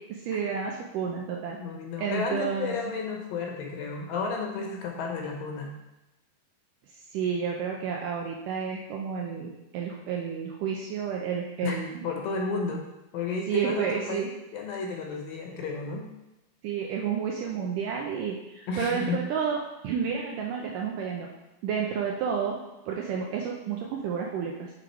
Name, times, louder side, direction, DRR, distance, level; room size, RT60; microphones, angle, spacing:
voice 1, 0.1-1.6 2.0-2.7 7.1-12.1 13.5-14.3 16.6-21.3 21.6-22.6 22.9-24.7, right 7 dB, 75° right, -1 dB, 2.0 m, -30 dB
voice 2, 1.6-5.7 11.6-11.8 12.0-12.9 13.1-14.3 14.5-16.1 18.7-19.2, left 4 dB, 75° left, 1 dB, 2.5 m, -32 dB
8.4 x 3.7 x 4.6 m, 0.97 s
omnidirectional pair, 4.4 m